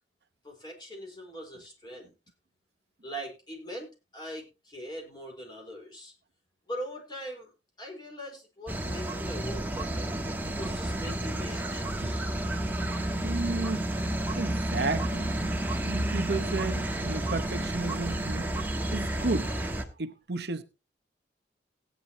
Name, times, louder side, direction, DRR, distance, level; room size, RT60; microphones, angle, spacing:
voice 1, 0.4-2.1 3.0-6.1 6.7-7.5 7.8-10.2 10.6-12.3, equal, 25° left, 4.4 m, -41 dB
sound 1, 8.7-19.8, right 1 dB, 10° right, 1.3 m, -31 dB
voice 2, 12.0-12.4 13.2-13.9 14.3-15.3 15.8-18.5 18.9-19.5 20.0-20.6, right 3 dB, 60° right, 0.8 m, -33 dB
17.5 x 9.4 x 2.9 m
head